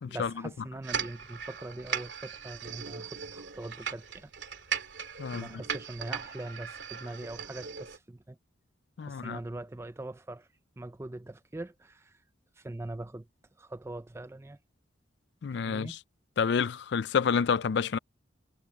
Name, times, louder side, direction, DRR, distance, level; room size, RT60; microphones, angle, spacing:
voice 1, 0.1-4.3 5.3-8.4 9.0-10.5 10.8-12.2 12.6-13.3 13.6-14.6 15.7-16.0, right 2 dB, 15° right, 0.4 m, -42 dB
sound 1, 0.8-8.0, right 7 dB, 65° right, 2.9 m, -38 dB
voice 2, 5.2-5.6 9.0-9.4 15.4-16.0 16.4-18.0, left 6 dB, 60° left, 0.4 m, -29 dB
head